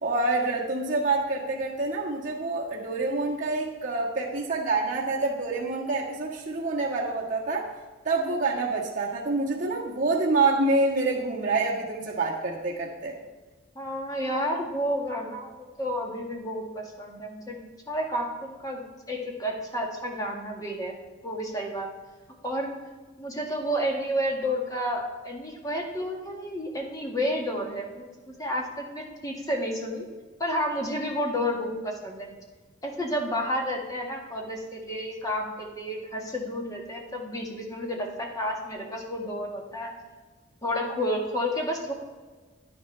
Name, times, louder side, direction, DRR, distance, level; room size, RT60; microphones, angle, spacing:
voice 1, 0.0-7.7 8.0-13.2, right 3 dB, 40° right, -5 dB, 1.7 m, -27 dB
voice 2, 13.7-17.6 17.9-18.8 19.1-20.9 21.2-21.9 22.4-22.7 23.2-30.0 30.4-32.3 32.8-39.9 40.6-41.9, equal, 20° left, 0 dB, 1.7 m, -31 dB
10.5 x 10.5 x 3.3 m, 1.3 s
head